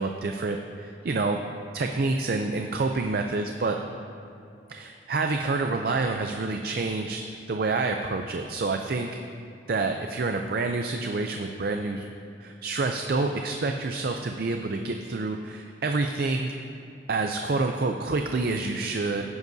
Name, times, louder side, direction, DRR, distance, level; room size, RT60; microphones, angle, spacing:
voice 1, 0.0-1.4 1.7-3.8 4.7-9.1 9.7-12.1 12.4-16.7 17.1-19.2, right 3 dB, 55° right, 4 dB, 0.5 m, -28 dB
16.0 x 9.5 x 2.7 m, 2.6 s
head